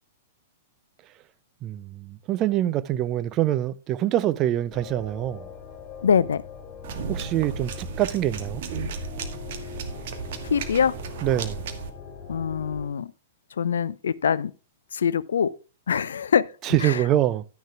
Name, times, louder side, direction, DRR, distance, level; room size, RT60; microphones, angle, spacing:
voice 1, 1.6-5.5 7.1-8.6 11.2-11.7 16.6-17.4, right 13 dB, 30° right, 0.5 m, -25 dB
sound 1, 4.7-12.9, left 6 dB, 20° left, 3.1 m, -42 dB
voice 2, 6.0-6.4 10.4-11.0 12.3-13.1 13.6-14.5 14.9-15.5 15.9-16.5 16.8-17.0, left 7 dB, 65° left, 0.4 m, -23 dB
sound 2, 6.8-11.9, right 5 dB, 50° right, 1.5 m, -34 dB
11.5 x 10.0 x 2.4 m
figure-of-eight pair, 105°, 0 cm